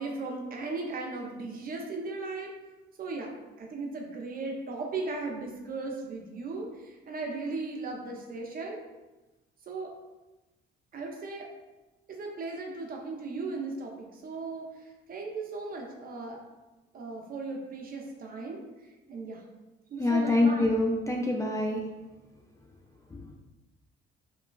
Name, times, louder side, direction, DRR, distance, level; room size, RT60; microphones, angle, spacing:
voice 1, 0.0-2.5 3.0-3.3 3.6-8.8 9.7-9.9 10.9-11.5 12.1-16.4 16.9-18.6 19.1-19.4 19.9-20.7, right 3 dB, 45° right, 1 dB, 0.5 m, -37 dB
voice 2, 20.0-21.8 23.1-23.2, left 2 dB, 15° left, 0 dB, 0.3 m, -25 dB
2.9 x 2.3 x 2.2 m, 1.1 s
cardioid pair, 90°, 20 cm